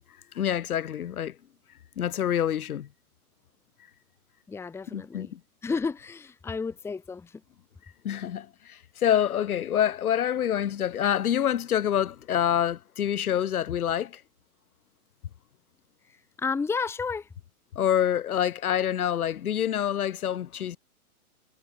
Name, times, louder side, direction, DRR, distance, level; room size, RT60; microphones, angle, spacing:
voice 1, 0.3-1.3 2.0-2.9 4.9-5.4 8.0-14.2 17.8-20.8, left 10 dB, 75° left, 2.7 m, -26 dB
voice 2, 4.5-5.3 5.6-7.3 16.4-17.3, left 5 dB, 5° left, 1.3 m, -31 dB
hypercardioid pair, 150°, 44 cm